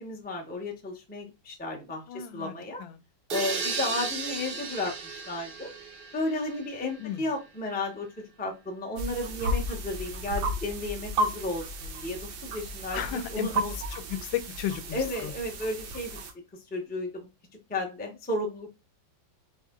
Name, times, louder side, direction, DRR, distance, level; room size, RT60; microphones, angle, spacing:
voice 1, 0.0-2.8 3.3-5.7 6.1-8.1 8.4-13.0 13.3-13.7 14.9-16.2 16.7-17.3 17.7-18.8, left 2 dB, 10° left, 0.4 m, -33 dB
voice 2, 2.1-3.0 7.0-7.2 12.9-13.6 13.9-15.3, left 11 dB, 85° left, 1.3 m, -34 dB
sound 1, 3.3-7.0, right 5 dB, 60° right, 0.5 m, -35 dB
sound 2, 9.0-16.3, right 1 dB, 90° right, 1.6 m, -33 dB
4.7 x 2.7 x 3.6 m
omnidirectional pair, 2.0 m